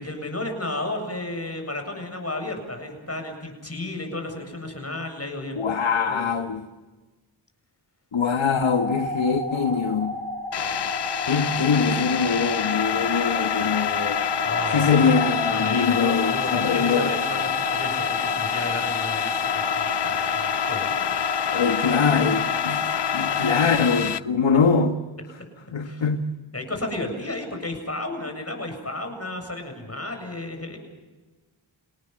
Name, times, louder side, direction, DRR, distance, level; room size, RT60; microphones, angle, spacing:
voice 1, 0.0-5.6 6.1-6.3 11.4-12.0 14.4-15.1 15.5-21.2 25.8-26.1 26.5-30.8, left 2 dB, 30° left, 5 dB, 7.7 m, -33 dB
voice 2, 5.5-6.6 8.1-10.2 11.3-14.2 14.7-17.1 21.5-24.9 25.7-26.4, left 5 dB, 80° left, 6 dB, 1.5 m, -23 dB
sound 1, 8.6-23.6, left 1 dB, 45° right, 1.8 m, -31 dB
sound 2, 10.5-24.2, left 9 dB, 60° left, 0.7 m, -27 dB
27.5 x 19.0 x 7.6 m, 1.2 s
cardioid pair, 55°, 47 cm